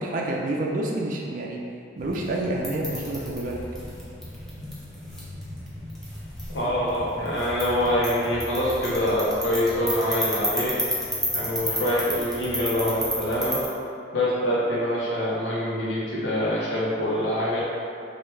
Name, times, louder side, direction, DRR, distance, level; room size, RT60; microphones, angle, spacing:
voice 1, 0.0-1.6 2.0-3.6, right 1 dB, 50° right, -2 dB, 0.3 m, -28 dB
sound 1, 2.0-13.7, equal, ahead, 0.6 m, -33 dB
voice 2, 6.5-10.7 11.3-13.6 14.1-17.6, left 1 dB, 90° left, -9 dB, 0.7 m, -25 dB
3.0 x 2.3 x 3.1 m, 2.5 s
head